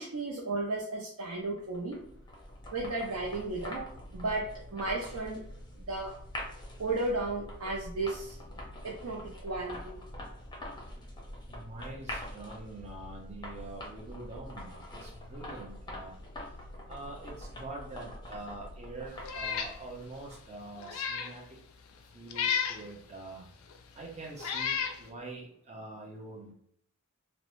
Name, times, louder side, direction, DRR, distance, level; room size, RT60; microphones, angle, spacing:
voice 1, 0.0-2.1 2.7-5.4 5.8-6.2 6.8-8.4 8.8-10.0, right 2 dB, 80° right, -2 dB, 0.5 m, -34 dB
sound 1, 1.6-20.6, left 1 dB, 20° left, 0.6 m, -45 dB
voice 2, 11.5-16.2 16.9-21.4 22.1-23.5 23.9-26.5, right 2 dB, 30° right, -2 dB, 0.6 m, -45 dB
Meow, 19.2-19.7 20.2-20.3 20.8-21.3 22.3-22.8 23.7-23.8 24.4-25.0, left 7 dB, 70° left, 0.3 m, -32 dB
2.5 x 2.0 x 3.0 m, 0.66 s
head